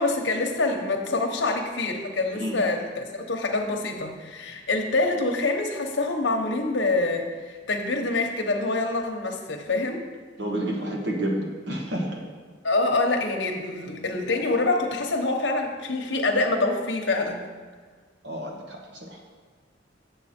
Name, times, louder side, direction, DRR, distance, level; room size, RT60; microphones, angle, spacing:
voice 1, 0.0-10.0 12.6-17.5, left 2 dB, 85° left, 2 dB, 1.0 m, -26 dB
voice 2, 10.4-12.2 18.2-19.2, right 1 dB, 80° right, -1 dB, 1.6 m, -30 dB
8.0 x 7.0 x 4.4 m, 1.5 s
head